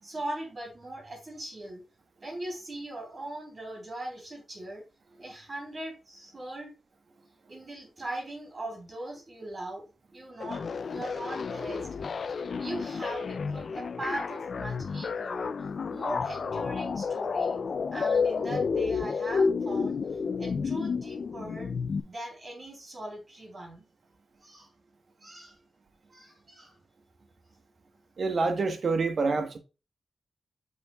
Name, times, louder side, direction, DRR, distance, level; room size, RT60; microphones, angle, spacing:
voice 1, 0.0-1.8 2.2-4.8 5.2-6.7 7.5-9.8 10.1-11.9 12.6-15.5 15.9-17.6 17.9-20.0 20.4-21.7 22.0-23.8 24.4-24.7 25.2-25.5 26.1-26.7, right 1 dB, 45° right, 3.5 m, -40 dB
sound 1, 10.4-22.0, left 5 dB, 65° left, 0.4 m, -31 dB
voice 2, 28.2-29.6, right 4 dB, 65° right, 1.3 m, -27 dB
7.0 x 5.9 x 2.3 m
cardioid pair, 65°, 0 cm